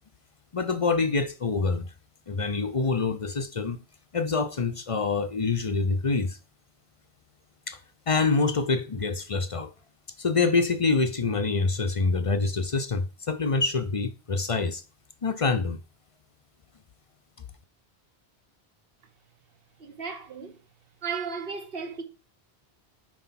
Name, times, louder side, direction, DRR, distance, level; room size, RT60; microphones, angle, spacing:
voice 1, 0.5-1.9 2.3-3.8 4.1-6.4 7.7-7.8 8.1-9.7 10.2-14.8 15.2-15.8, left 4 dB, 40° left, 0.6 m, -26 dB
voice 2, 19.8-20.6 21.0-22.0, right 5 dB, 60° right, 1.4 m, -34 dB
6.0 x 4.7 x 5.7 m
omnidirectional pair, 1.1 m